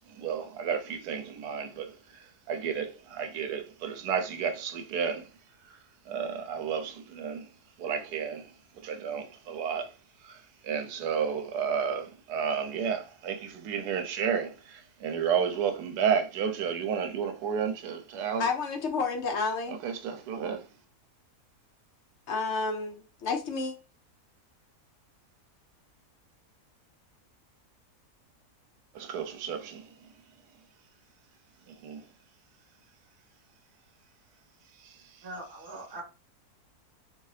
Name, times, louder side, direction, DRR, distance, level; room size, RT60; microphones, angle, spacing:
voice 1, 0.1-1.9 2.5-5.3 6.1-7.5 7.8-8.5 8.8-9.9 10.2-10.4 10.6-18.4 19.8-20.6 28.9-29.9 31.8-32.0 34.8-34.9, right 7 dB, 85° right, 1.2 m, -31 dB
voice 2, 18.4-19.8 22.3-23.7, left 4 dB, 65° left, 0.7 m, -30 dB
voice 3, 35.2-36.0, right 2 dB, 35° right, 1.2 m, -41 dB
2.9 x 2.7 x 3.1 m
omnidirectional pair, 1.7 m